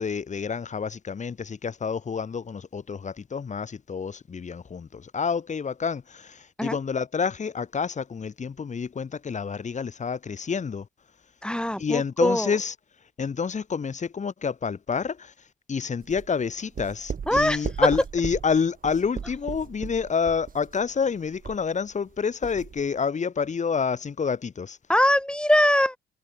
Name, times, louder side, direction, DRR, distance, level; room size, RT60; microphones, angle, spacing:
voice 1, 0.0-10.9 11.8-12.7 13.2-15.3 15.7-24.8, left 6 dB, 35° left, 1.9 m, -28 dB
voice 2, 11.4-12.5 17.3-17.6 24.9-26.0, left 1 dB, 5° left, 5.8 m, -22 dB
sound 1, 16.0-22.1 22.4-22.9, right 6 dB, 45° right, 3.3 m, -37 dB
cardioid pair, 90°, 20 cm